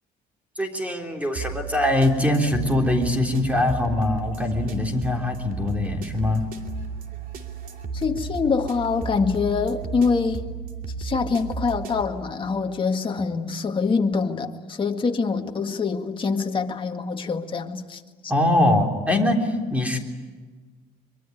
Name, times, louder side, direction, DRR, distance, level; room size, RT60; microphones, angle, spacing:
voice 1, 0.6-6.4 18.3-20.0, left 1 dB, 10° right, 3.6 m, -22 dB
sound 1, 1.4-12.0, right 5 dB, 55° right, 2.8 m, -34 dB
voice 2, 7.9-10.4 11.0-18.0, left 5 dB, 30° left, 2.0 m, -25 dB
24.0 x 23.5 x 9.3 m
cardioid pair, 110°, 17 cm